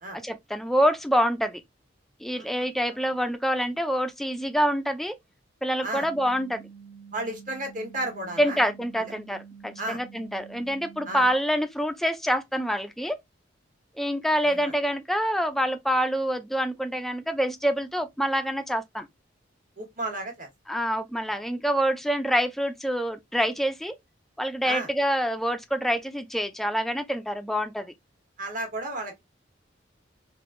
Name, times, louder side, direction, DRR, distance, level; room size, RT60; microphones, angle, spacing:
voice 1, 0.1-1.6 2.2-5.1 5.6-6.6 8.4-13.2 14.0-19.1 20.7-23.9 24.4-27.9, equal, ahead, 0.4 m, -26 dB
sound 1, 5.9-11.3, right 6 dB, 60° left, 0.6 m, -48 dB
voice 2, 7.1-8.6 9.0-9.1 9.8-10.0 11.1-11.3 14.4-14.7 19.8-20.5 24.6-24.9 28.4-29.2, right 2 dB, 45° right, 1.4 m, -33 dB
3.4 x 2.5 x 2.5 m
head